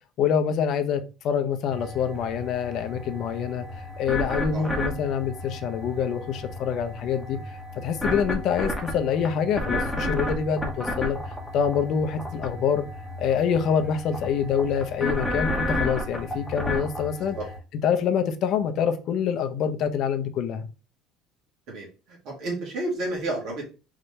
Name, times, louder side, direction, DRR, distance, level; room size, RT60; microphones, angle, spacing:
voice 1, 0.2-3.7 4.0-7.4 7.8-12.9 13.2-17.4 17.8-20.7, left 7 dB, 45° left, 0.6 m, -26 dB
sound 1, 1.7-17.6, left 1 dB, 5° left, 0.9 m, -32 dB
voice 2, 21.7-23.7, right 2 dB, 55° right, 2.3 m, -31 dB
4.1 x 3.7 x 3.3 m
cardioid pair, 150°, 0 cm